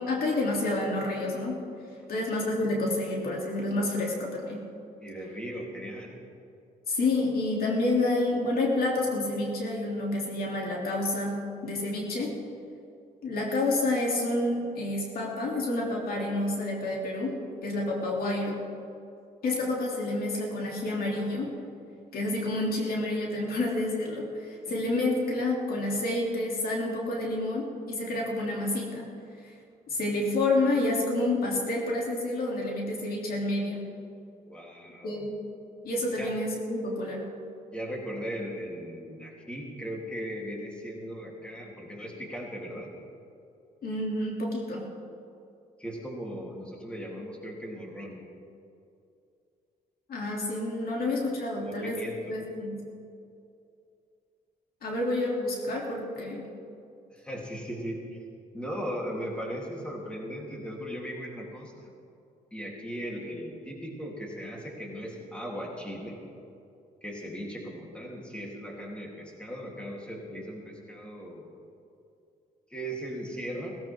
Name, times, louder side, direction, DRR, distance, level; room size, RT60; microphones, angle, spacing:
voice 1, 0.0-1.6 2.1-4.6 6.9-12.3 13.2-17.4 17.6-18.6 19.4-21.5 22.1-29.1 29.4-29.5 29.9-33.8 35.0-35.3 35.8-37.2 43.8-44.8 50.1-52.0 52.3-52.8 54.8-56.5, left 2 dB, 65° left, -2 dB, 3.2 m, -29 dB
voice 2, 5.0-6.1 24.7-24.8 34.5-35.3 36.2-36.3 37.7-42.9 45.8-48.2 51.6-52.4 57.1-58.2 58.5-61.7 62.5-66.2 67.0-71.4 72.7-73.8, equal, 5° left, -3 dB, 3.5 m, -38 dB
17.0 x 16.5 x 3.8 m, 2.6 s
cardioid pair, 80°, 17 cm